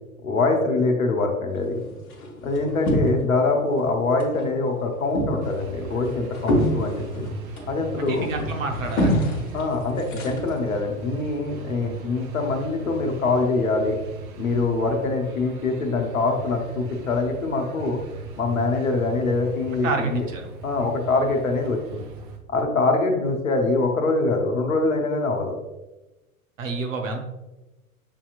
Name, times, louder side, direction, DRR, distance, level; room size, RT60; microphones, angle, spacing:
voice 1, 0.2-1.8 2.4-7.3 7.7-8.3 9.5-13.9 14.4-18.0 18.4-20.3 20.6-22.0 22.5-25.6, left 3 dB, 70° left, 2 dB, 0.9 m, -24 dB
sound 1, 1.5-3.5 3.8-4.5 4.8-10.8, equal, 45° left, 1.2 m, -27 dB
sound 2, 5.4-22.4, right 3 dB, 35° right, 0.5 m, -38 dB
voice 2, 8.0-9.2 19.8-20.4 26.6-27.2, right 3 dB, 60° right, 3 dB, 0.9 m, -28 dB
6.8 x 2.8 x 2.4 m, 1.0 s
figure-of-eight pair, 95°, 43 cm